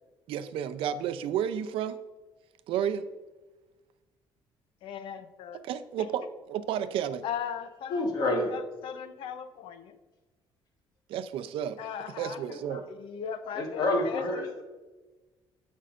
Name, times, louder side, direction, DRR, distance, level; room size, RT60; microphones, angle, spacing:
voice 1, 0.3-2.0 2.7-3.1 5.6-6.2 6.5-7.2 11.1-11.8 12.2-12.8, right 9 dB, 75° right, 11 dB, 0.5 m, -31 dB
voice 2, 4.8-5.6 7.2-8.0 8.5-10.0 11.8-12.5 12.9-14.5, left 8 dB, 70° left, 10 dB, 0.7 m, -38 dB
voice 3, 7.9-8.5 12.5-12.8 13.5-14.6, left 2 dB, 45° left, 3 dB, 1.3 m, -28 dB
14.5 x 5.5 x 2.5 m, 1.2 s
cardioid pair, 180°, 9 cm